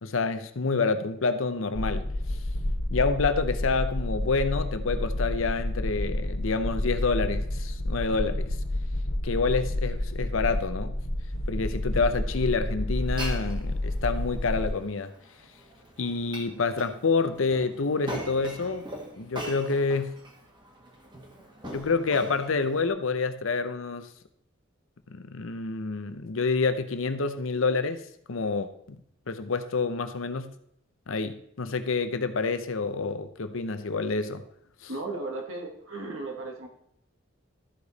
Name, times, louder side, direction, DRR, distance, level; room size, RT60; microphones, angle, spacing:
voice 1, 0.0-2.4 2.9-8.6 9.2-11.0 11.5-15.1 16.0-18.9 19.2-20.2 21.6-24.1 25.1-28.0 28.3-29.0 29.3-30.5 31.1-34.4 34.8-34.9, left 4 dB, 80° left, 10 dB, 0.7 m, -28 dB
sound 1, 1.7-14.7, left 1 dB, 50° left, 1.1 m, -30 dB
Glass, 13.0-22.9, right 1 dB, 20° right, 1.3 m, -42 dB
voice 2, 34.9-36.7, right 2 dB, 85° right, 2 dB, 1.9 m, -35 dB
13.0 x 5.0 x 4.1 m, 0.69 s
head